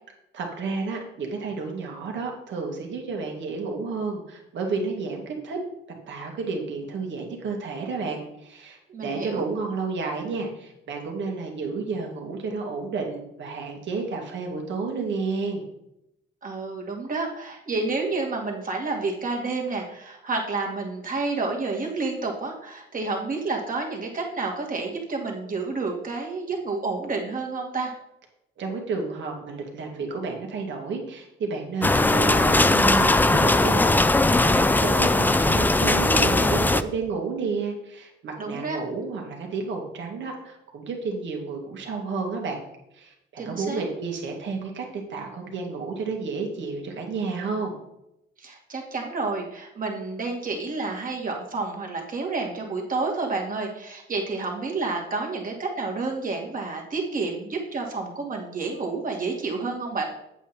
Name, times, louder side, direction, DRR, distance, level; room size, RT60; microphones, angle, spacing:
voice 1, 0.3-5.6 6.1-15.6 28.6-42.6 42.9-47.8, right 4 dB, 70° right, 1 dB, 2.3 m, -31 dB
voice 2, 8.9-9.4 16.4-27.9 38.4-38.8 43.4-43.9 48.4-60.1, right 3 dB, 45° right, 0 dB, 2.4 m, -30 dB
sound 1, 31.8-36.8, left 2 dB, 10° left, 0.4 m, -19 dB
8.2 x 7.9 x 4.4 m, 0.83 s
cardioid pair, 90°, 20 cm